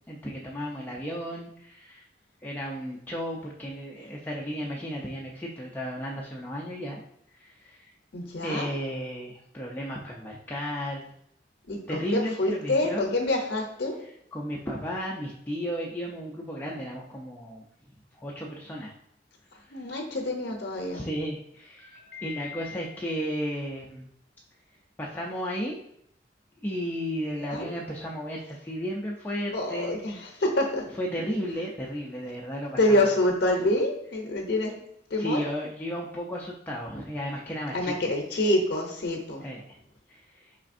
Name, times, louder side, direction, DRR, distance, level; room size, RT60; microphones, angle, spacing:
voice 1, 0.1-2.0 2.4-7.0 7.4-7.9 8.4-11.1 11.9-13.0 14.3-17.6 18.1-18.9 19.6-19.8 20.9-24.1 25.0-25.8 26.6-30.0 31.0-33.1 35.2-38.1 39.4-39.8 40.1-40.5, equal, 10° left, -3 dB, 0.4 m, -34 dB
voice 2, 8.1-8.7 11.7-14.0 19.7-21.1 21.8-22.8 27.4-27.7 29.5-30.9 32.8-34.8 35.1-35.4 37.7-39.4, left 1 dB, 65° left, 1 dB, 0.6 m, -27 dB
4.9 x 3.4 x 2.5 m, 0.73 s
head